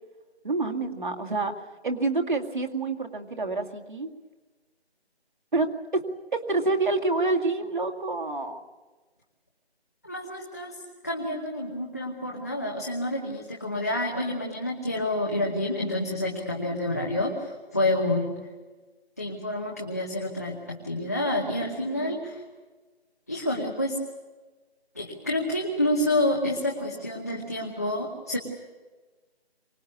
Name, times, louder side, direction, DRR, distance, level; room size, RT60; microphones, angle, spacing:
voice 1, 0.4-1.5 1.8-4.1 5.5-6.0 6.3-8.6 21.8-22.2, right 3 dB, 50° right, 3 dB, 2.4 m, -27 dB
voice 2, 10.0-10.7 11.0-18.3 19.2-20.6 20.8-22.4 23.3-24.0 24.9-28.4, left 1 dB, 15° left, -1 dB, 1.1 m, -28 dB
24.5 x 19.5 x 8.4 m, 1.3 s
figure-of-eight pair, 175°, 32 cm